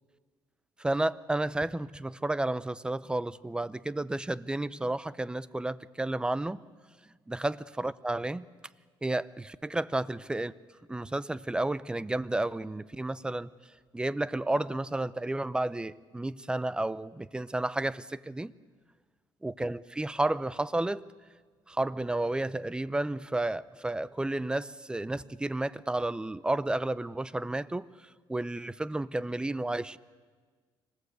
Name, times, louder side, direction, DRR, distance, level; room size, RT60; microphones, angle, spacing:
voice 1, 0.8-6.6 7.3-8.4 9.0-10.5 10.9-13.5 13.9-18.5 19.4-21.1 21.7-27.9 28.3-30.0, right 2 dB, 10° right, 17 dB, 0.7 m, -31 dB
25.5 x 19.5 x 8.2 m, 1.5 s
cardioid pair, 100°, 10 cm